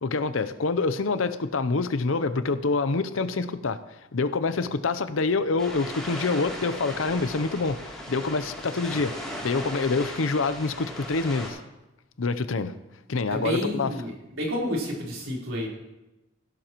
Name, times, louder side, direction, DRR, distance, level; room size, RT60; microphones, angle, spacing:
voice 1, 0.0-3.8 4.1-11.6 12.2-12.7 13.1-13.9, left 3 dB, 80° left, 12 dB, 0.7 m, -26 dB
sound 1, 5.6-11.5, equal, 5° left, 2.9 m, -37 dB
voice 2, 13.3-14.1 14.4-15.7, equal, 85° right, -4 dB, 4.0 m, -29 dB
16.0 x 12.0 x 3.0 m, 0.98 s
head